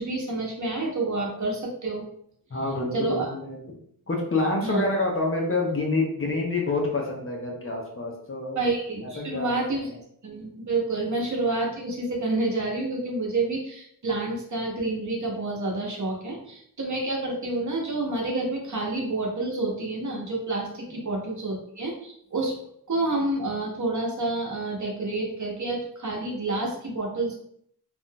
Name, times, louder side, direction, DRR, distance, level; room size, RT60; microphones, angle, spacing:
voice 1, 0.0-2.1 2.9-3.3 4.6-4.8 8.5-9.9 10.2-22.6 22.9-27.3, right 2 dB, 50° right, -1 dB, 0.9 m, -28 dB
voice 2, 2.5-3.8 4.1-8.6 9.0-9.5 20.9-21.0, left 2 dB, 35° left, -1 dB, 0.8 m, -27 dB
3.6 x 2.5 x 2.2 m, 0.68 s
cardioid pair, 60°, 38 cm